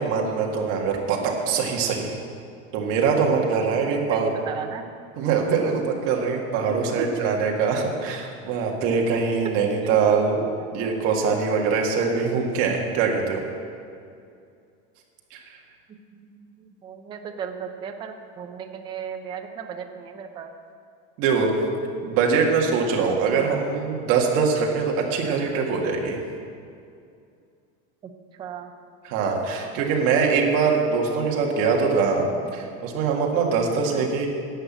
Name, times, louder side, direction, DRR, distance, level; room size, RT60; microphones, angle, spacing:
voice 1, 0.0-2.1 2.7-4.3 5.2-10.4 10.7-13.4 15.3-15.4 21.2-21.5 22.0-26.2 29.0-32.3 32.5-34.3, right 5 dB, 40° right, 0 dB, 1.9 m, -23 dB
voice 2, 3.6-4.8 7.0-7.1 10.6-10.7 15.9-16.5 16.8-20.5 23.3-23.4 28.0-28.1 28.4-28.7 33.9-34.0, right 7 dB, 15° right, 4 dB, 0.5 m, -36 dB
11.0 x 7.9 x 8.7 m, 2.4 s
supercardioid pair, 175°, 34 cm